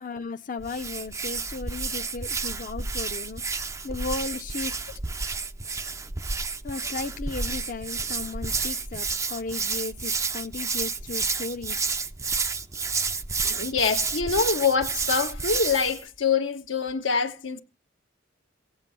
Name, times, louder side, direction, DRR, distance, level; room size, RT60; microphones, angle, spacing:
voice 1, 0.0-3.4 3.8-4.9 6.6-11.9, left 3 dB, 45° left, 0.7 m, -35 dB
Hands, 0.6-16.0, right 4 dB, 15° right, 0.5 m, -30 dB
voice 2, 13.4-17.6, left 5 dB, 80° left, 1.3 m, -25 dB
16.5 x 8.0 x 5.6 m
head